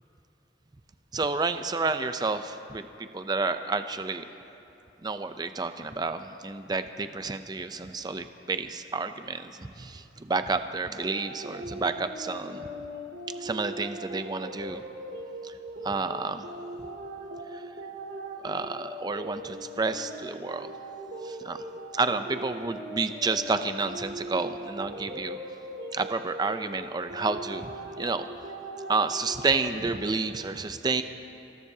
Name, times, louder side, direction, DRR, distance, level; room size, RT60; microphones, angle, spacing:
voice 1, 1.1-4.3 5.0-12.7 13.4-14.8 15.4-15.6 15.8-16.5 17.5-17.6 18.4-20.7 21.2-21.6 21.9-25.4 25.9-27.7 28.0-28.3 28.9-31.0, right 3 dB, 25° right, 9 dB, 0.5 m, -30 dB
sound 1, 10.9-30.0, right 1 dB, 70° right, 2.0 m, -40 dB
26.5 x 18.0 x 2.8 m, 2.9 s
head